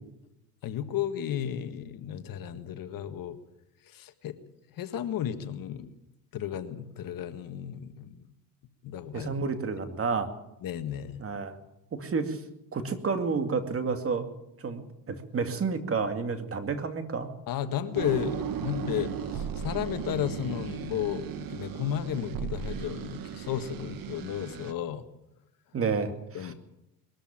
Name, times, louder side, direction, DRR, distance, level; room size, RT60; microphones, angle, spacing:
voice 1, 0.6-3.4 3.9-4.3 4.8-5.9 6.3-8.2 8.8-9.3 10.6-11.2 17.5-25.0 26.3-26.5, left 10 dB, 50° left, 10 dB, 1.7 m, -33 dB
voice 2, 9.1-10.3 11.2-11.6 11.9-12.4 12.7-14.3 14.6-17.3 25.7-26.5, right 5 dB, 30° right, 8 dB, 2.4 m, -30 dB
sound 1, 17.9-24.7, right 8 dB, 55° right, 1.9 m, -36 dB
22.0 x 14.0 x 8.9 m, 0.88 s
supercardioid pair, 110°, 42 cm